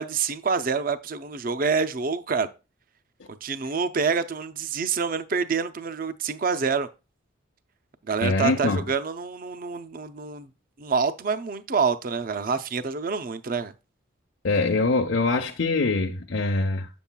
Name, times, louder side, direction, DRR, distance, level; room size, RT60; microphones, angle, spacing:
voice 1, 0.0-2.5 3.4-6.9 8.1-10.5 10.8-13.7, right 5 dB, 45° right, 0.5 m, -27 dB
voice 2, 8.2-8.8 14.4-16.9, left 3 dB, 65° left, 0.7 m, -23 dB
8.0 x 7.0 x 2.2 m
head